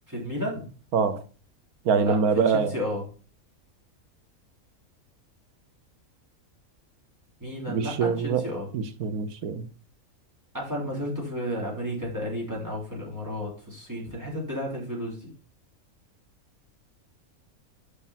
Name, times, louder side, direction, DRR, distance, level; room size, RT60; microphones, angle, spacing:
voice 1, 0.1-0.7 2.0-2.2 2.5-3.0 7.4-8.7 10.5-15.3, equal, 10° right, 3.2 m, -32 dB
voice 2, 1.8-2.7 7.7-8.5 8.7-9.7, right 6 dB, 90° right, 1.3 m, -24 dB
6.6 x 5.6 x 5.6 m
omnidirectional pair, 1.5 m